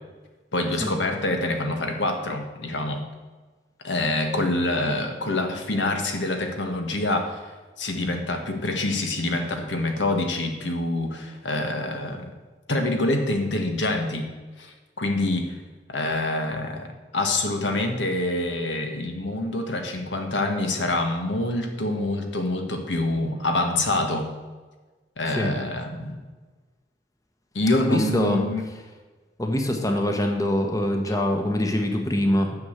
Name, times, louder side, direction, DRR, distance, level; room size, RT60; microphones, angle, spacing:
voice 1, 0.5-3.0 3.8-7.4 7.8-12.3 12.7-14.3 14.6-15.6 15.9-24.3 25.2-26.2 27.5-28.6, left 2 dB, 80° left, 4 dB, 1.5 m, -26 dB
voice 2, 27.8-28.4 29.4-32.6, left 1 dB, 20° left, 3 dB, 1.0 m, -24 dB
9.6 x 6.3 x 8.0 m, 1.3 s
head